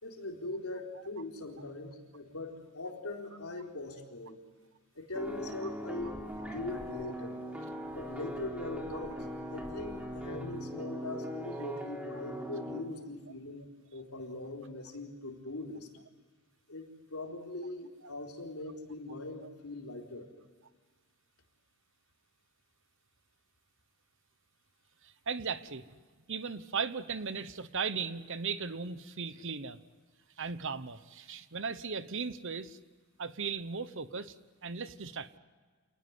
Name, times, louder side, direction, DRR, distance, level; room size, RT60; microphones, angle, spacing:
voice 1, 0.0-4.4 4.9-7.4 7.9-15.9 16.7-20.3, left 2 dB, 75° left, 1 dB, 4.1 m, -41 dB
sound 1, 5.1-12.8, equal, 5° right, 3.5 m, -40 dB
voice 2, 25.0-25.8 26.3-29.8 30.4-32.8 33.2-34.3 34.6-35.4, right 5 dB, 55° right, 13 dB, 1.1 m, -37 dB
28.5 x 19.5 x 9.5 m, 1.5 s
head